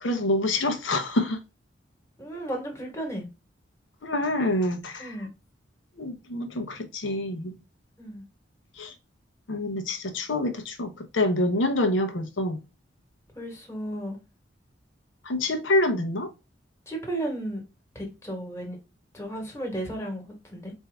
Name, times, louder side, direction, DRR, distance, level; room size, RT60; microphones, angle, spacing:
voice 1, 0.0-1.4 4.0-5.1 6.0-7.5 8.8-8.9 9.5-12.6 15.2-16.3, left 1 dB, 85° left, 0.8 m, -26 dB
voice 2, 2.2-3.3 5.0-5.3 8.0-8.2 11.5-11.6 13.3-14.2 16.9-17.6 17.9-18.8 19.1-20.7, right 1 dB, 15° left, 1.3 m, -34 dB
4.4 x 2.6 x 3.3 m
head